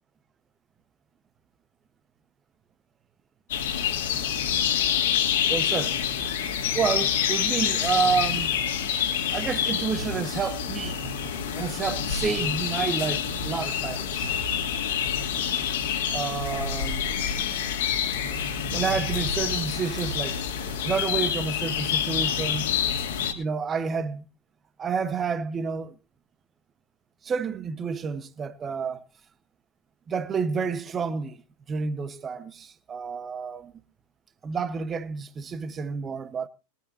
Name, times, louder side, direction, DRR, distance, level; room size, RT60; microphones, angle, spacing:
sound 1, 3.5-23.3, left 8 dB, 60° left, 2.9 m, -27 dB
voice 1, 5.5-6.0 6.7-8.5 9.3-14.3 16.1-17.1 18.7-20.4 20.8-22.6 23.3-24.3 24.8-25.9 27.2-29.0 30.1-31.4 31.7-33.7 34.4-36.5, right 5 dB, 20° right, 1.3 m, -29 dB
21.5 x 13.5 x 2.8 m
figure-of-eight pair, 90°, 0 cm